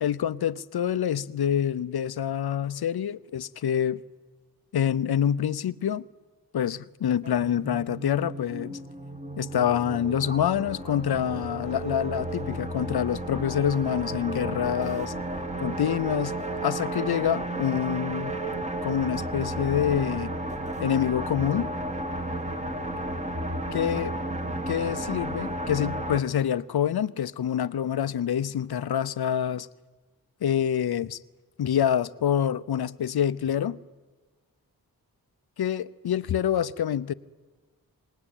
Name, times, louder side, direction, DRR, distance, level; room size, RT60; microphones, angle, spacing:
voice 1, 0.0-4.0 4.7-6.0 6.5-8.8 9.4-15.1 15.6-16.3 16.6-18.4 18.8-20.3 20.8-21.7 23.7-24.2 24.7-29.7 30.4-31.2 31.6-33.8 35.6-37.1, left 9 dB, 85° left, 0.7 m, -26 dB
sound 1, 7.2-26.2, right 1 dB, 20° right, 1.9 m, -33 dB
Wind instrument woodwind instrument, 14.6-20.9, right 1 dB, 85° right, 6.3 m, -52 dB
27.5 x 20.0 x 9.1 m
wide cardioid pair, 80°, 37 cm